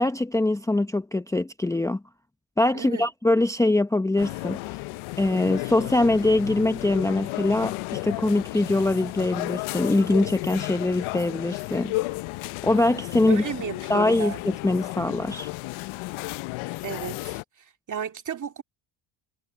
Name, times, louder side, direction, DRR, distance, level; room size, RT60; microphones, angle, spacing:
voice 1, 0.0-2.0 2.6-4.6 5.2-11.9 12.6-13.4 13.9-14.3 14.6-15.5, left 2 dB, 5° left, 0.8 m, -23 dB
voice 2, 2.7-3.1 13.3-14.4 16.8-18.6, right 7 dB, 40° right, 2.5 m, -34 dB
sound 1, 4.2-17.4, left 22 dB, 85° left, 0.7 m, -33 dB
cardioid pair, 100°, 48 cm